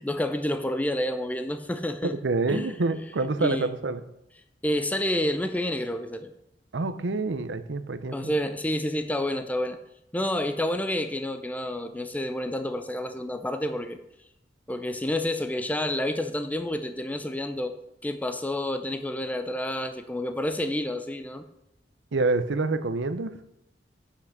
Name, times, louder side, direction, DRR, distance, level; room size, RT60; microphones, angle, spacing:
voice 1, 0.0-2.1 2.5-2.7 3.4-3.7 4.6-6.3 8.1-9.8 10.1-14.0 14.7-17.7 18.0-21.4, left 1 dB, 10° left, 8 dB, 0.5 m, -29 dB
voice 2, 2.0-4.0 6.7-8.3 22.1-23.4, right 3 dB, 70° right, 12 dB, 0.7 m, -27 dB
8.4 x 5.9 x 6.6 m, 0.83 s
head